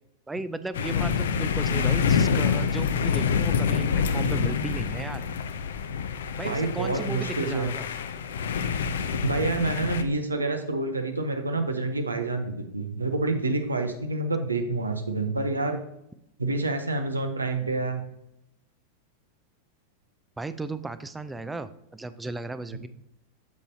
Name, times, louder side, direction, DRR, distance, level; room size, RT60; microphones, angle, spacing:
voice 1, 0.3-5.3 6.4-7.9 20.4-22.9, right 2 dB, 10° right, 12 dB, 0.4 m, -35 dB
sound 1, 0.7-10.0, left 6 dB, 60° left, 0.5 m, -26 dB
voice 2, 6.4-7.7 9.2-15.8 16.4-18.0, right 3 dB, 80° right, 6 dB, 0.9 m, -28 dB
8.3 x 6.9 x 2.7 m, 0.84 s
figure-of-eight pair, 90°, 0 cm